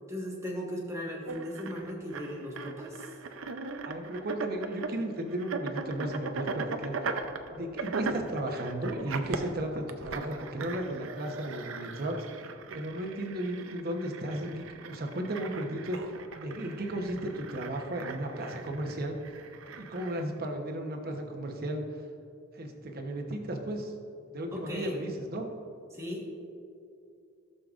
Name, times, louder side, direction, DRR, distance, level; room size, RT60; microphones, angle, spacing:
voice 1, 0.1-3.1 24.5-24.9 25.9-26.3, equal, 15° right, -2 dB, 1.5 m, -37 dB
sound 1, 1.3-20.2, right 4 dB, 75° right, 0.6 m, -39 dB
voice 2, 3.8-7.1 7.5-12.3 12.7-19.2 19.7-22.0 22.5-24.0 24.3-25.5, right 1 dB, 50° right, 3 dB, 1.0 m, -35 dB
16.5 x 6.7 x 2.5 m, 2.5 s
head